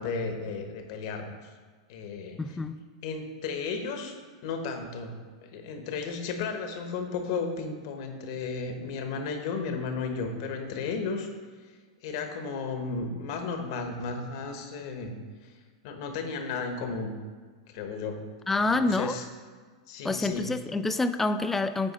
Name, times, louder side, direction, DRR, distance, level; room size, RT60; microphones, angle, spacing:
voice 1, 0.0-1.5 1.9-2.4 3.0-4.1 4.4-5.1 5.4-11.3 12.0-15.2 15.8-17.1 17.7-18.2 18.6-19.2 19.9-20.4, left 4 dB, 60° left, 5 dB, 1.1 m, -34 dB
voice 2, 2.4-2.8 18.5-19.2 20.0-21.9, left 3 dB, 10° left, 10 dB, 0.3 m, -27 dB
9.3 x 4.3 x 4.2 m, 1.5 s
hypercardioid pair, 130°, 3 cm